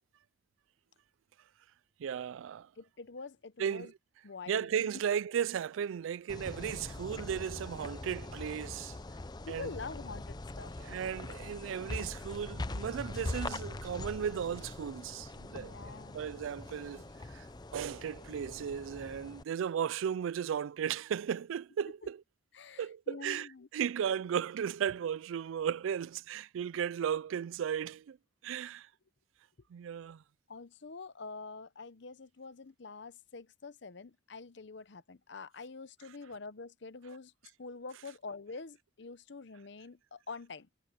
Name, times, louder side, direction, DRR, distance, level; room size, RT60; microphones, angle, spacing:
voice 1, 2.0-2.7 3.6-3.9 4.5-9.0 9.5-9.7 10.8-15.7 16.1-17.5 17.7-22.2 22.8-28.2 28.4-28.9 29.7-30.2, right 8 dB, 80° right, 0.3 m, -35 dB
voice 2, 2.8-3.9 4.2-4.9 9.5-10.7 15.5-16.2 22.5-23.7 30.5-37.3 37.6-40.7, left 4 dB, 60° left, 0.7 m, -46 dB
sound 1, 6.3-19.4, left 2 dB, 20° left, 0.5 m, -42 dB
head